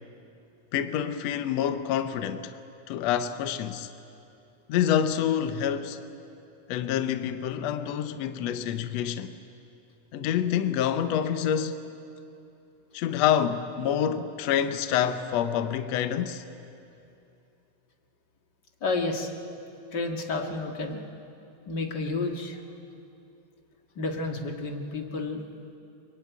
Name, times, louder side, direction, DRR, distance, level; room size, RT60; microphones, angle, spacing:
voice 1, 0.7-2.6 2.9-3.9 4.7-6.0 6.7-9.4 10.1-11.9 12.9-16.4, left 9 dB, 70° left, 1.9 m, -27 dB
voice 2, 18.8-19.3 19.9-21.0 21.7-22.6 24.0-25.4, left 3 dB, 40° left, 2.3 m, -30 dB
24.0 x 23.0 x 9.4 m
omnidirectional pair, 3.4 m